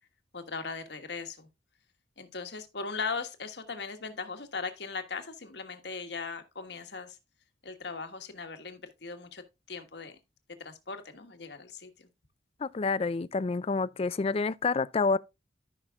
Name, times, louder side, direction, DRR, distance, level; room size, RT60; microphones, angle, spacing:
voice 1, 0.3-1.5 2.2-7.2 7.6-9.4 9.7-10.2 10.6-12.1, left 4 dB, 65° left, 1.5 m, -39 dB
voice 2, 12.6-15.2, left 4 dB, 35° left, 0.4 m, -28 dB
14.0 x 5.7 x 2.3 m
head